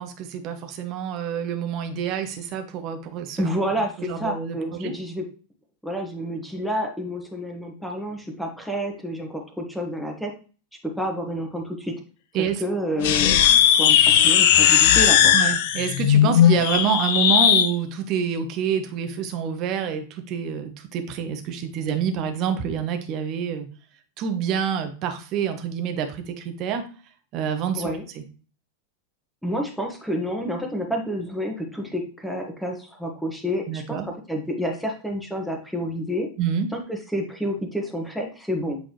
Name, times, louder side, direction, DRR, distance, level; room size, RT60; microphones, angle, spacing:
voice 1, 0.0-3.5 4.0-4.9 12.3-12.6 15.3-23.7 24.2-26.9 27.3-27.9 33.7-34.1 36.4-36.7, right 7 dB, 40° right, 6 dB, 1.1 m, -27 dB
voice 2, 3.4-5.3 5.8-10.3 10.8-12.0 12.6-15.4 27.7-28.0 29.4-36.3 36.7-38.8, equal, ahead, 1 dB, 1.5 m, -29 dB
sound 1, 13.0-17.7, left 10 dB, 50° left, 0.6 m, -17 dB
8.2 x 3.9 x 3.1 m, 0.37 s
figure-of-eight pair, 90°, 0 cm